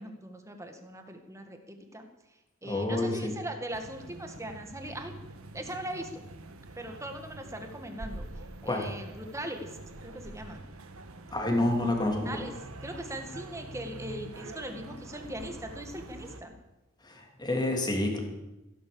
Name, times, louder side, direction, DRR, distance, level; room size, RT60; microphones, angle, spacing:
voice 1, 0.0-2.1 2.6-5.2 5.5-6.1 6.8-8.2 8.6-9.8 10.0-10.6 11.8-11.9 12.3-12.5 12.8-16.5, right 1 dB, 15° right, 5 dB, 1.8 m, -40 dB
voice 2, 2.6-3.3 8.6-8.9 11.3-12.4 17.0-18.2, left 1 dB, 20° left, 2 dB, 3.0 m, -28 dB
sound 1, 3.7-16.4, right 2 dB, 85° right, 1.4 m, -45 dB
15.5 x 11.5 x 7.1 m, 0.99 s
head